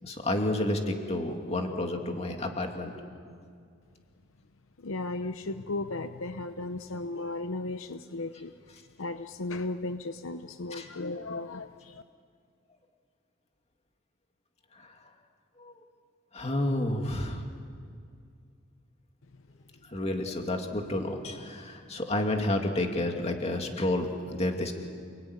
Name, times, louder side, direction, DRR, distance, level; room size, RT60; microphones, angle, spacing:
voice 1, 0.0-2.9 10.7-10.9 14.7-15.1 15.6-15.7 16.3-17.4 19.8-24.7, left 1 dB, 30° left, 3 dB, 2.6 m, -30 dB
voice 2, 4.8-8.5 9.0-12.0, left 2 dB, 70° left, 9 dB, 0.8 m, -35 dB
29.0 x 20.0 x 9.9 m, 2.3 s
head